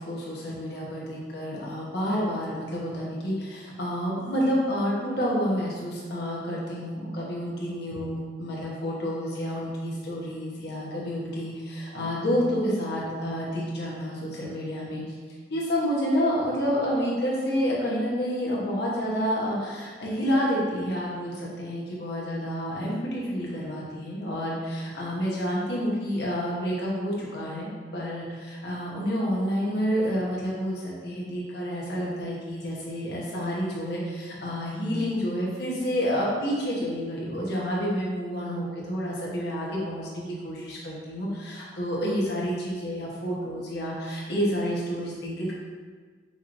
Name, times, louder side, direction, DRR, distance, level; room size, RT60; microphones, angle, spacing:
voice 1, 0.1-15.0 15.5-45.5, equal, 60° left, -5 dB, 1.0 m, -29 dB
5.6 x 3.0 x 2.5 m, 1.5 s
head